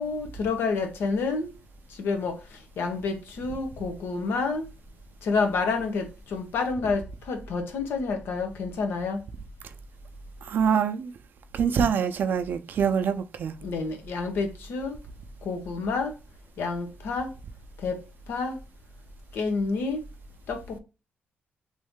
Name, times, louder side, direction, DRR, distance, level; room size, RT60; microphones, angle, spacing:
voice 1, 0.0-1.5 2.0-2.4 2.8-4.6 5.2-9.2 13.6-15.0 15.4-16.1 16.6-17.3 17.8-18.0 18.3-18.6 19.3-20.0 20.5-20.8, left 4 dB, 75° left, 0.9 m, -29 dB
voice 2, 10.4-11.1 11.5-13.6, right 7 dB, 60° right, 0.5 m, -25 dB
3.1 x 2.7 x 3.5 m
cardioid pair, 115°, 4 cm